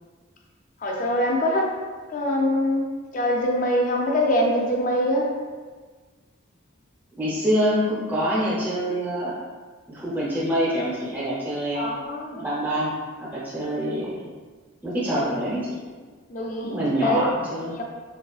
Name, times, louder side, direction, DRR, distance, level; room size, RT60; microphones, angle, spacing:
voice 1, 0.8-1.7 2.1-2.8 3.1-5.3 11.7-12.4 15.1-15.3 16.3-17.2 17.6-17.8, left 1 dB, 40° left, 0 dB, 0.4 m, -24 dB
voice 2, 7.1-9.3 9.9-11.9 12.3-12.9 13.2-14.2 14.8-15.8 16.6-17.8, equal, 10° right, -8 dB, 0.7 m, -25 dB
3.2 x 2.3 x 2.3 m, 1.5 s
head